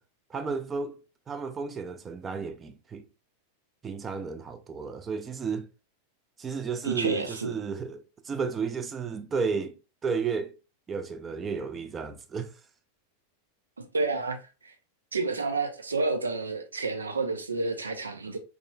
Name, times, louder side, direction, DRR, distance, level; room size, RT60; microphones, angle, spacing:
voice 1, 0.3-1.0 1.3-3.0 3.8-5.7 6.4-9.7 10.0-10.5 10.9-12.5, right 5 dB, 20° right, 0.4 m, -32 dB
voice 2, 6.8-7.5 13.9-14.4 14.6-14.7 15.1-18.4, right 3 dB, 75° right, 0.5 m, -29 dB
3.7 x 3.1 x 2.2 m
figure-of-eight pair, 90°, 0 cm